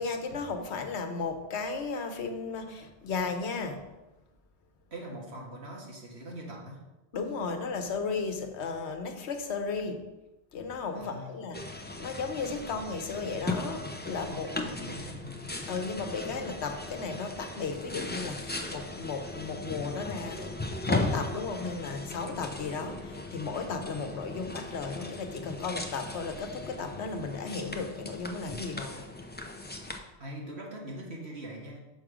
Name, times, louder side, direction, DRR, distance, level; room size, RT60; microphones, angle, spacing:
voice 1, 0.0-3.8 7.1-10.0 10.5-14.5 15.7-20.5 20.8-29.1, left 4 dB, 85° left, 6 dB, 1.1 m, -35 dB
voice 2, 4.9-6.8 10.9-11.4 14.3-15.5 30.2-31.8, right 1 dB, 75° right, -2 dB, 1.9 m, -42 dB
sound 1, 11.5-30.0, left 2 dB, 15° left, 0.5 m, -38 dB
sound 2, 14.1-24.8, left 3 dB, 60° right, 2.3 m, -58 dB
6.2 x 4.9 x 6.1 m, 1.1 s
omnidirectional pair, 1.1 m